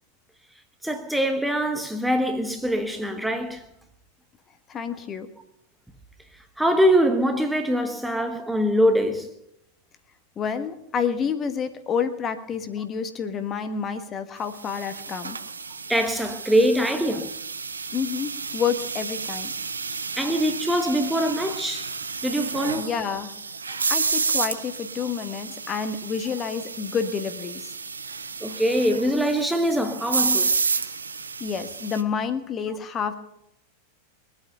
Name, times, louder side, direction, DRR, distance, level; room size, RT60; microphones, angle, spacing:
voice 1, 0.8-3.6 6.6-9.3 15.9-17.3 20.1-21.9 22.2-22.9 28.4-30.5, equal, 5° right, 1.1 m, -23 dB
voice 2, 4.7-5.3 10.4-15.4 17.9-19.5 22.8-23.3 23.9-27.7 31.4-33.1, left 6 dB, 25° left, 1.4 m, -29 dB
sound 1, 14.6-32.0, right 5 dB, 75° right, 0.9 m, -31 dB
22.5 x 8.7 x 6.7 m
figure-of-eight pair, 90°, 0 cm